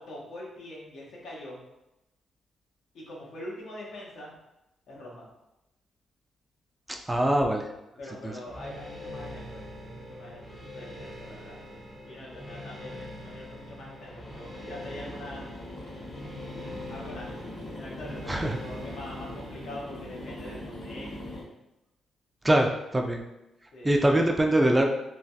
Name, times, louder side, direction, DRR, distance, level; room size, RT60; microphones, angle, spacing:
voice 1, 0.0-1.6 2.9-4.3 4.9-5.3 8.0-11.6 12.1-15.5 16.9-17.4 17.8-21.5 23.7-24.0, left 1 dB, 75° left, -4 dB, 0.9 m, -43 dB
voice 2, 7.1-7.6 8.2-8.3 18.3-18.6 22.4-23.2 23.8-24.9, right 1 dB, 15° right, 2 dB, 0.3 m, -23 dB
sound 1, 8.5-19.8, left 1 dB, 30° left, 0.7 m, -43 dB
sound 2, 14.0-21.4, left 1 dB, 55° left, 1.3 m, -42 dB
3.2 x 2.2 x 2.7 m, 0.92 s
cardioid pair, 100°, 0 cm